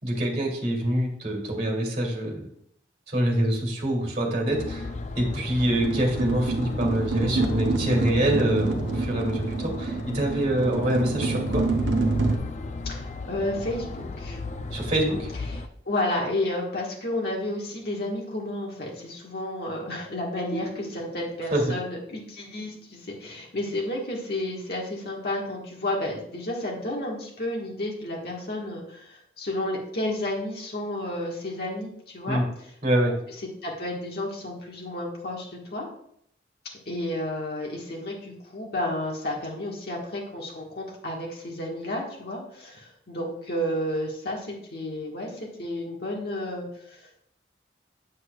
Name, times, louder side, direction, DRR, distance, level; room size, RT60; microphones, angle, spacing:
voice 1, 0.0-2.5 3.1-4.9 5.2-11.7 14.7-15.3 21.5-21.7 32.3-32.4 32.8-33.1, right 1 dB, 40° right, 0 dB, 2.4 m, -25 dB
sound 1, 4.5-15.7, left 3 dB, 40° left, 0.4 m, -35 dB
sound 2, 5.7-12.4, right 3 dB, 75° right, 0.9 m, -27 dB
voice 2, 12.8-14.4 15.5-32.4 33.6-35.9 36.9-47.2, left 1 dB, 55° left, -2 dB, 1.5 m, -31 dB
sound 3, 20.5-23.9, right 3 dB, 5° right, 1.4 m, -42 dB
8.0 x 7.5 x 2.3 m, 0.70 s
head